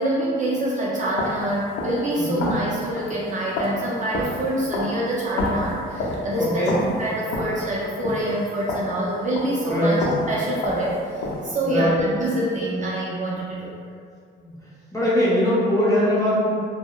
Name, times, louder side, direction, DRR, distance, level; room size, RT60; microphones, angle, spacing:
voice 1, 0.0-6.7 7.0-10.0 10.3-13.7, right 1 dB, 40° right, -6 dB, 0.5 m, -26 dB
sound 1, 1.1-9.7 10.0-11.6, left 1 dB, 80° left, 0.5 m, -30 dB
voice 2, 2.2-2.5 6.4-6.8 9.6-10.1 11.6-11.9 14.4-14.5 14.9-16.5, equal, 15° left, -8 dB, 0.8 m, -21 dB
2.7 x 2.0 x 2.3 m, 2.2 s
cardioid pair, 90°, 20 cm